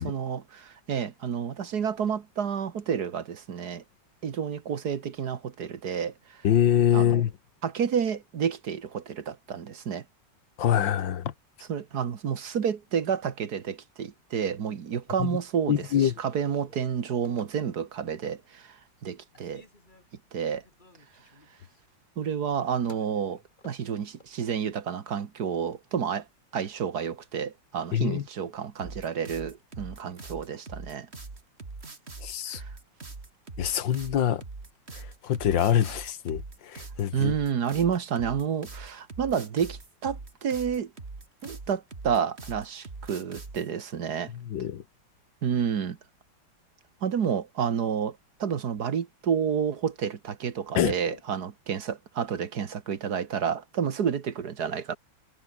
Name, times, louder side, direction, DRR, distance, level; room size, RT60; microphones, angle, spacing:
voice 1, 0.0-3.8 4.2-6.4 6.9-7.2 7.6-10.0 11.7-18.8 19.0-19.6 20.3-20.6 22.2-26.3 26.5-31.1 32.5-32.7 37.1-40.9 41.4-44.3 45.4-46.0 47.0-55.0, right 7 dB, 60° right, 1.9 m, -30 dB
voice 2, 6.4-7.3 10.6-11.3 15.2-15.4 15.7-16.1 27.9-28.3 32.2-32.6 33.6-34.4 34.9-37.3 44.3-44.8 50.8-51.2, left 9 dB, 80° left, 2.0 m, -25 dB
Telephone, 15.7-18.1 18.6-19.1 19.3-24.4, left 2 dB, 25° left, 3.6 m, -57 dB
sound 1, 28.8-43.7, right 3 dB, 35° right, 2.9 m, -42 dB
omnidirectional pair, 2.0 m